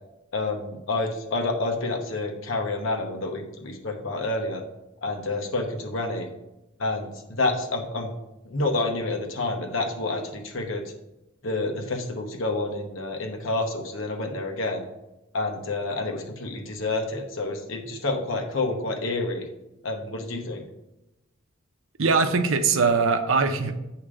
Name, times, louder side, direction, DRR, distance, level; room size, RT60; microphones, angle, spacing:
voice 1, 0.3-4.6 5.0-6.3 6.8-8.1 8.4-10.8 11.4-14.8 15.3-19.4 19.8-20.6, left 2 dB, 75° left, 3 dB, 1.0 m, -28 dB
voice 2, 22.0-23.8, right 4 dB, 85° right, 8 dB, 0.6 m, -21 dB
8.6 x 2.9 x 4.9 m, 0.94 s
head